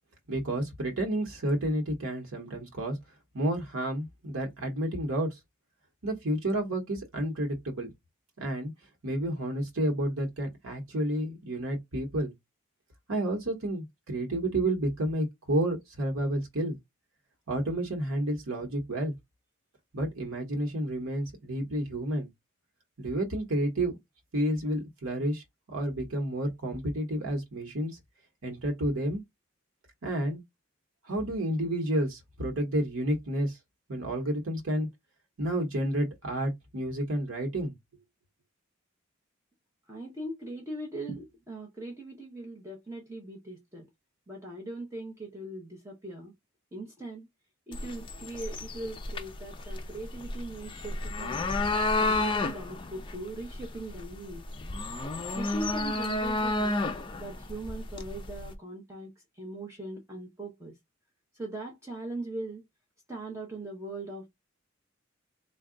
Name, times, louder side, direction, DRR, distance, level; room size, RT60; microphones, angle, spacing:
voice 1, 0.3-3.0 3.3-5.4 6.0-7.9 8.4-8.7 9.0-12.3 13.1-16.8 17.5-19.1 19.9-22.3 23.0-23.9 24.3-25.4 25.7-28.0 28.4-29.2 30.0-30.4 31.0-33.6 33.9-34.9 35.4-37.7, right 1 dB, 90° right, 1.0 m, -30 dB
voice 2, 39.9-43.8 44.3-46.3 46.7-47.3 47.7-51.4 52.0-54.4 55.4-59.1 59.4-60.7 61.3-62.6 63.1-64.3, right 2 dB, 15° right, 0.8 m, -40 dB
sound 1, 47.7-58.5, left 2 dB, 25° left, 0.5 m, -32 dB
3.6 x 2.2 x 3.7 m
head